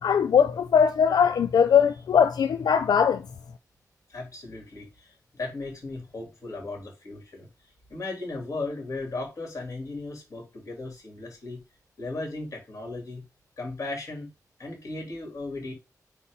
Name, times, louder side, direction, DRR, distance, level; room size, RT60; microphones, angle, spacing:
voice 1, 0.0-3.2, left 7 dB, 90° left, 0.5 m, -20 dB
voice 2, 4.1-7.5 7.9-11.6 12.0-13.2 13.6-14.3 14.6-15.7, left 2 dB, 50° left, 3.5 m, -36 dB
8.4 x 3.0 x 5.4 m
wide cardioid pair, 150°, 7 cm